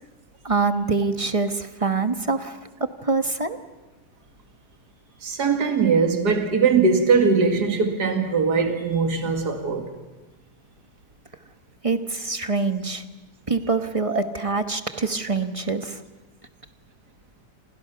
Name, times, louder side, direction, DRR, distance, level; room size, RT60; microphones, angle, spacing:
voice 1, 0.4-2.6 3.0-3.6 11.8-13.0 13.5-16.0, right 4 dB, 20° right, 8 dB, 1.0 m, -25 dB
voice 2, 5.2-9.9 14.1-14.2, right 5 dB, 65° right, 5 dB, 2.7 m, -21 dB
29.5 x 27.0 x 5.9 m, 1.1 s
omnidirectional pair, 1.9 m